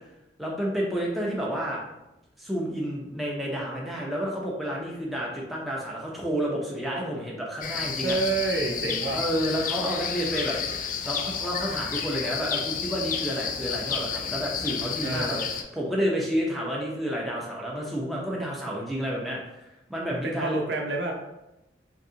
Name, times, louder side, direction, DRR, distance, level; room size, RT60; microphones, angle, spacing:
voice 1, 0.4-1.8 2.4-8.2 9.1-10.6 11.0-15.4 15.7-19.6 19.9-20.6, equal, ahead, -4 dB, 0.6 m, -30 dB
sound 1, 7.6-15.6, left 7 dB, 45° left, 0.3 m, -31 dB
voice 2, 8.0-9.2 15.0-15.5 20.1-21.2, right 3 dB, 65° right, 0 dB, 0.6 m, -28 dB
3.6 x 2.9 x 2.7 m, 0.93 s
head